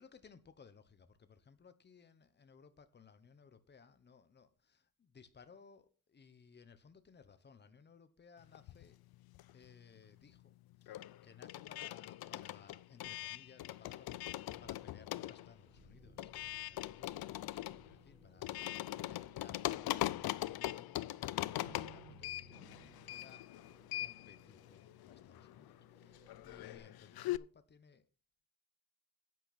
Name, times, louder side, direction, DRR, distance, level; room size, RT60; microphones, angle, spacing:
voice 1, 0.0-9.0 9.5-10.5 10.8-23.5 24.0-28.0, left 6 dB, 30° left, 1.0 m, -61 dB
sound 1, 8.5-9.8 10.1-27.4, left 15 dB, 75° left, 0.5 m, -42 dB
sound 2, 14.5-26.8, right 2 dB, 25° right, 4.6 m, -62 dB
10.5 x 8.9 x 4.2 m
wide cardioid pair, 160°, 37 cm